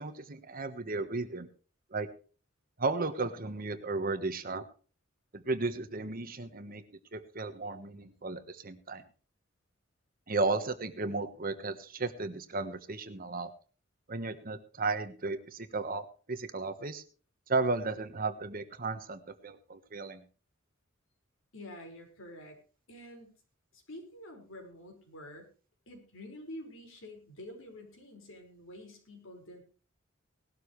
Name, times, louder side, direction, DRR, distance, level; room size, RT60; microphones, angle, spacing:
voice 1, 0.0-1.5 1.9-2.1 2.8-4.6 5.3-6.8 7.1-9.0 10.3-13.5 14.1-17.0 17.5-20.2, right 3 dB, 45° right, 10 dB, 1.3 m, -34 dB
voice 2, 21.5-22.6 22.9-23.3 23.7-25.5 25.9-29.6, left 1 dB, 80° left, 2 dB, 5.2 m, -48 dB
18.5 x 12.5 x 3.2 m, 0.37 s
head